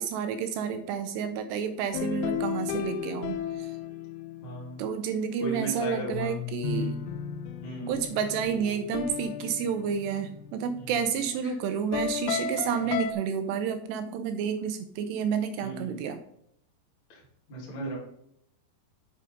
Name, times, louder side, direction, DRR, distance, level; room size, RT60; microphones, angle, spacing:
voice 1, 0.0-3.7 4.8-7.0 7.9-16.2, right 7 dB, 80° right, 9 dB, 2.7 m, -30 dB
sound 1, 1.9-4.8 6.1-10.7 11.9-13.1, left 7 dB, 85° left, 2.2 m, -34 dB
voice 2, 4.4-4.8 5.4-7.1 7.6-8.0 10.8-11.5 12.8-13.0 15.6-16.1 17.1-17.2 17.5-18.0, right 2 dB, 35° left, -5 dB, 2.7 m, -37 dB
8.5 x 5.5 x 5.2 m, 0.72 s
omnidirectional pair, 5.1 m